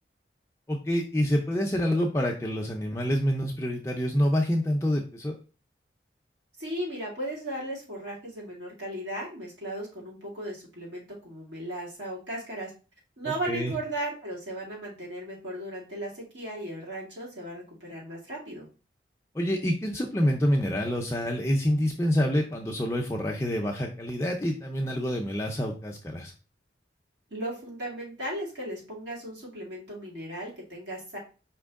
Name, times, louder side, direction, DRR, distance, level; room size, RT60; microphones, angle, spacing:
voice 1, 0.7-5.3 13.4-13.7 19.3-26.3, equal, 15° left, 1 dB, 0.4 m, -27 dB
voice 2, 6.6-12.7 13.2-18.7 27.3-31.2, right 1 dB, 80° right, -4 dB, 2.3 m, -36 dB
5.1 x 3.0 x 3.5 m, 0.35 s
head